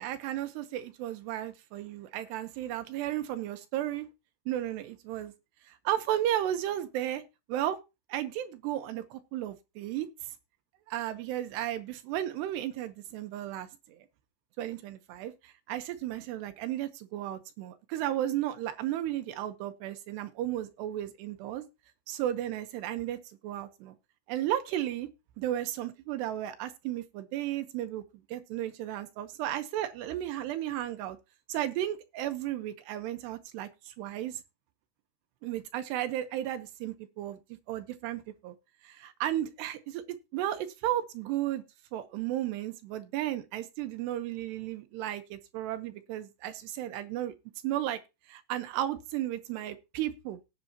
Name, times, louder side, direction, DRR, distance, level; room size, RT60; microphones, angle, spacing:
voice 1, 0.0-4.1 4.5-5.3 5.7-7.2 7.5-7.8 8.1-10.3 10.9-14.0 14.6-21.7 22.1-24.0 24.3-25.1 25.4-28.0 28.3-31.2 31.5-34.4 35.4-38.6 38.8-41.6 41.9-47.3 47.6-48.0 48.3-50.4, right 12 dB, 75° right, 2.6 m, -34 dB
17.5 x 8.2 x 2.8 m
omnidirectional pair, 5.7 m